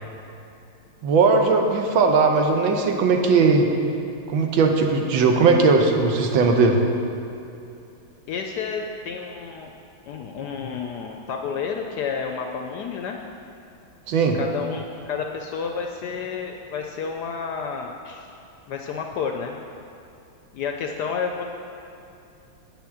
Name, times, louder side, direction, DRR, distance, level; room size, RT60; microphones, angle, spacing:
voice 1, 1.0-3.7 4.3-6.8 14.1-14.4, right 4 dB, 75° right, 3 dB, 1.6 m, -18 dB
voice 2, 8.3-9.7 10.1-13.2 14.3-18.3 18.7-19.6 20.5-21.4, left 6 dB, 70° left, 3 dB, 1.0 m, -30 dB
8.5 x 6.0 x 7.0 m, 2.7 s
omnidirectional pair, 2.2 m